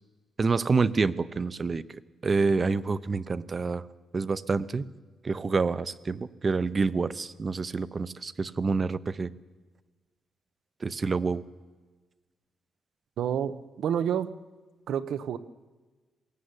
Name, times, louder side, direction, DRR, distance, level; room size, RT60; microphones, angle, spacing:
voice 1, 0.4-3.9 4.1-4.8 5.2-9.3 10.8-11.4, right 4 dB, 30° right, 17 dB, 0.7 m, -27 dB
voice 2, 13.2-14.4 14.9-15.4, right 9 dB, 70° right, 14 dB, 0.9 m, -29 dB
22.0 x 16.5 x 9.8 m, 1.3 s
cardioid pair, 145°, 0 cm